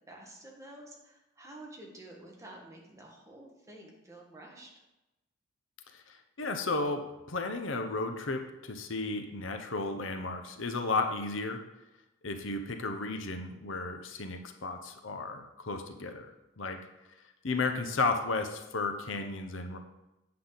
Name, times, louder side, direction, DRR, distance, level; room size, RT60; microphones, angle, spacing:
voice 1, 0.1-4.7, right 1 dB, 15° right, -1 dB, 1.6 m, -50 dB
voice 2, 5.9-11.6 12.2-16.3 16.6-16.8 17.4-19.8, left 3 dB, 75° left, 6 dB, 0.9 m, -33 dB
8.6 x 7.6 x 4.0 m, 0.95 s
head